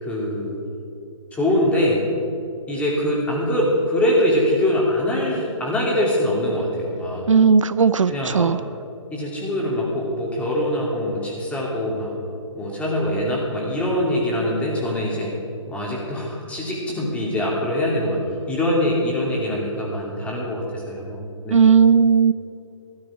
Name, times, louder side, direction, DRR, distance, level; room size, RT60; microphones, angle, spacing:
voice 1, 0.0-0.6 1.3-2.0 2.7-7.2 8.1-8.5 9.1-12.2 12.5-15.3 15.7-18.2 18.5-21.6, left 1 dB, 10° left, -4 dB, 2.7 m, -23 dB
voice 2, 7.3-8.6 21.5-22.3, right 6 dB, 70° right, 14 dB, 0.5 m, -16 dB
14.5 x 13.0 x 4.8 m, 2.7 s
figure-of-eight pair, 140°, 17 cm